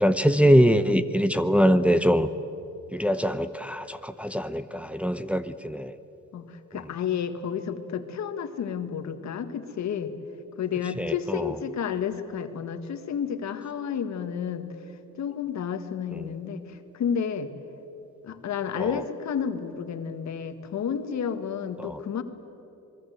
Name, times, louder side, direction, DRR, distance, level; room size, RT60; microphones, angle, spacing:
voice 1, 0.0-2.3 2.9-5.9 11.0-11.5 18.8-19.0 21.8-22.0, equal, 5° right, 9 dB, 0.8 m, -23 dB
voice 2, 6.3-10.1 10.6-14.6 15.2-17.5 18.2-22.2, left 7 dB, 65° left, 9 dB, 1.8 m, -31 dB
26.5 x 20.5 x 8.0 m, 2.9 s
cardioid pair, 90°, 30 cm